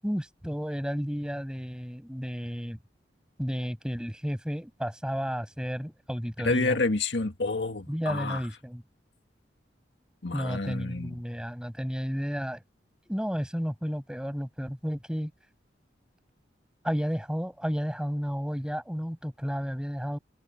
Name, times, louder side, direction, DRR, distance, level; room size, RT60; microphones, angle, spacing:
voice 1, 0.0-2.8 3.4-6.8 7.9-8.8 10.3-12.6 13.1-15.3 16.8-20.2, equal, 5° right, 7.4 m, -32 dB
voice 2, 6.4-8.4 10.2-11.2, left 3 dB, 70° left, 1.9 m, -29 dB
head